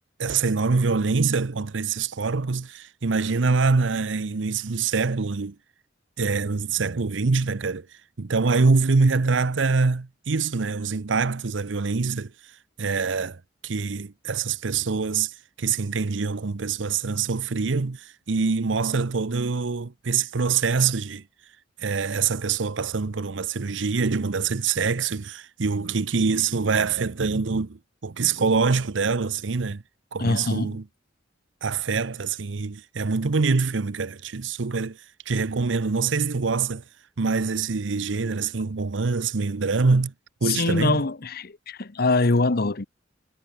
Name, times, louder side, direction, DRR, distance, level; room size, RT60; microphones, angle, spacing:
voice 1, 0.2-5.6 6.2-7.9 8.2-12.3 12.8-21.2 21.8-29.8 30.1-30.8 31.6-35.0 35.3-36.8 37.2-40.1 40.4-41.0, right 4 dB, 75° right, 0.7 m, -25 dB
voice 2, 30.2-30.7 40.4-42.9, left 3 dB, 55° left, 1.0 m, -23 dB
head